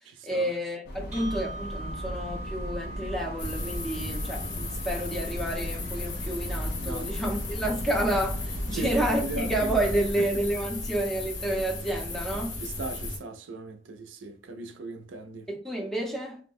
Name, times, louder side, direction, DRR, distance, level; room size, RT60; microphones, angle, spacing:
voice 1, 0.2-12.6 15.5-16.4, right 1 dB, ahead, 0.6 m, -30 dB
sound 1, 0.8-10.1, equal, 50° left, 0.6 m, -37 dB
sound 2, 1.1-9.2, right 2 dB, 35° right, 0.7 m, -46 dB
sound 3, 3.4-13.2, left 2 dB, 80° left, 0.8 m, -35 dB
voice 2, 12.6-15.4, right 3 dB, 80° right, 0.5 m, -38 dB
2.5 x 2.1 x 3.5 m
head